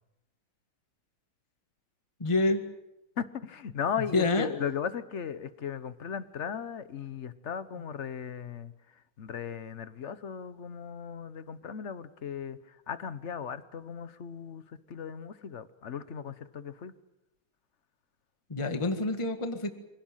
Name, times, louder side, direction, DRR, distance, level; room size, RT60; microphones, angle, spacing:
voice 1, 2.2-2.6 4.1-4.5 18.5-19.7, left 2 dB, 15° left, 7 dB, 1.6 m, -27 dB
voice 2, 3.2-16.9 18.7-18.9, left 7 dB, 45° left, 14 dB, 1.0 m, -37 dB
25.5 x 17.5 x 9.1 m, 0.94 s
omnidirectional pair, 2.2 m